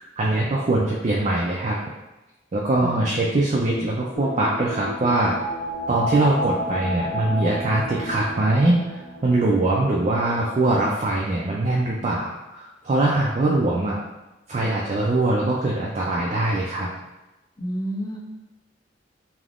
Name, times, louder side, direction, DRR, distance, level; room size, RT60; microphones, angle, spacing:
voice 1, 0.2-1.8 2.5-5.4 5.9-14.0 14.5-16.9, right 2 dB, 35° right, -3 dB, 0.4 m, -22 dB
voice 2, 2.8-3.3 17.6-18.2, equal, 20° left, -2 dB, 0.5 m, -30 dB
sound 1, 4.1-10.1 10.4-10.5, left 1 dB, 55° left, 0.8 m, -31 dB
3.4 x 2.8 x 2.4 m, 1.0 s
head